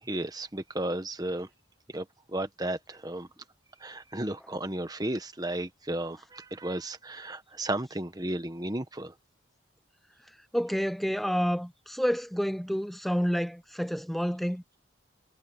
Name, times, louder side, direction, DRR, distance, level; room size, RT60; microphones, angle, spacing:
voice 1, 0.0-1.5 1.9-3.3 3.8-9.1, right 1 dB, 20° right, 1.2 m, -34 dB
voice 2, 10.5-14.8, equal, ahead, 0.5 m, -29 dB
head